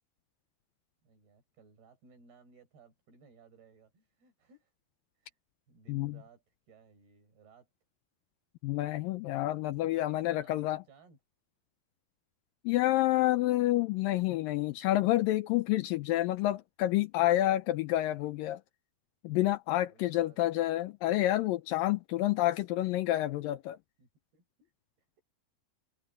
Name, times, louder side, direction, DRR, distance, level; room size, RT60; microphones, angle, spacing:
voice 1, 1.0-4.7 5.2-5.4 5.7-7.7 10.3-11.2 19.7-20.6 24.0-24.7 25.0-25.2, right 4 dB, 80° right, 8.5 m, -61 dB
voice 2, 8.6-10.8 12.6-18.6 19.2-23.8, left 15 dB, 80° left, 2.1 m, -29 dB
omnidirectional pair, 4.5 m